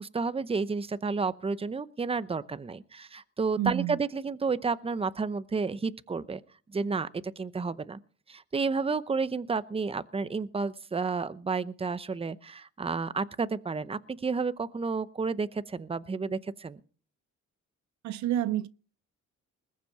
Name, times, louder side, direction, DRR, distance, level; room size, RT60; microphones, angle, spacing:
voice 1, 0.0-6.4 6.7-7.1 7.4-8.0 8.3-16.8, right 4 dB, 20° right, 0.7 m, -31 dB
voice 2, 3.5-4.0 18.0-18.7, right 12 dB, 70° right, 0.5 m, -29 dB
20.5 x 7.6 x 5.8 m
cardioid pair, 90°, 30 cm